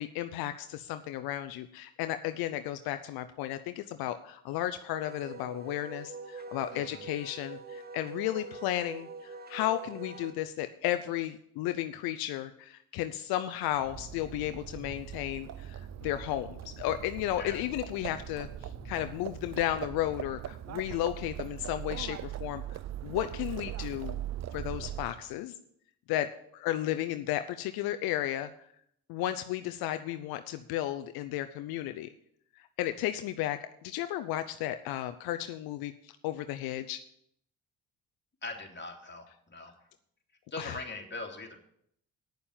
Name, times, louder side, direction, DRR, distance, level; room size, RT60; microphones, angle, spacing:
voice 1, 0.0-24.2 24.5-25.5 26.1-28.5 29.1-32.1 32.6-37.0 40.6-40.8, left 13 dB, 80° left, 10 dB, 0.6 m, -34 dB
Wind instrument woodwind instrument, 5.1-10.3, right 3 dB, 25° right, 1.3 m, -44 dB
voice 2, 6.7-7.0 17.4-17.6 38.4-39.7 40.5-41.6, left 2 dB, 30° left, 1 dB, 2.9 m, -41 dB
Livestock farm animals working animals, 13.7-25.3, right 12 dB, 45° right, 0.5 m, -41 dB
Motor vehicle (road), 13.8-20.4, right 2 dB, 75° right, 5.0 m, -50 dB
9.3 x 7.0 x 8.6 m, 0.70 s
supercardioid pair, 60°, 36 cm